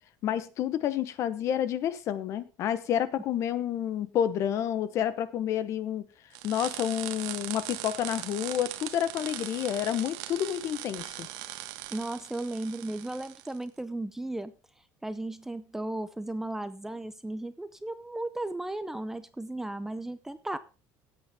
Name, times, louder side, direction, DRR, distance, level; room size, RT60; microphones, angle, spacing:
voice 1, 0.2-6.1 6.4-11.3, left 10 dB, 45° left, 1.0 m, -29 dB
sound 1, 6.3-13.6, right 15 dB, 75° right, 1.3 m, -40 dB
voice 2, 11.9-14.5 15.0-20.6, right 2 dB, 5° right, 0.6 m, -35 dB
16.5 x 8.4 x 3.6 m
cardioid pair, 155°, 7 cm